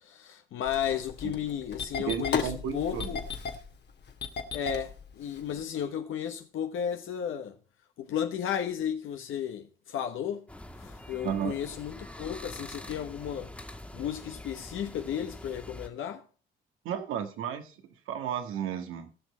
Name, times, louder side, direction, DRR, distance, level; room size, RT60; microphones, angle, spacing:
voice 1, 0.0-3.2 4.5-7.6 8.0-10.5 10.8-13.5 13.9-16.2, left 9 dB, 70° left, 1.1 m, -34 dB
Engine starting, 0.7-5.6, left 6 dB, 55° left, 1.8 m, -35 dB
voice 2, 2.1-3.1 11.2-11.5 16.8-17.7 18.1-19.1, right 9 dB, 80° right, 1.7 m, -33 dB
sound 1, 10.5-15.9, left 1 dB, 5° left, 1.9 m, -45 dB
17.5 x 6.4 x 4.3 m
supercardioid pair, 60°, 21 cm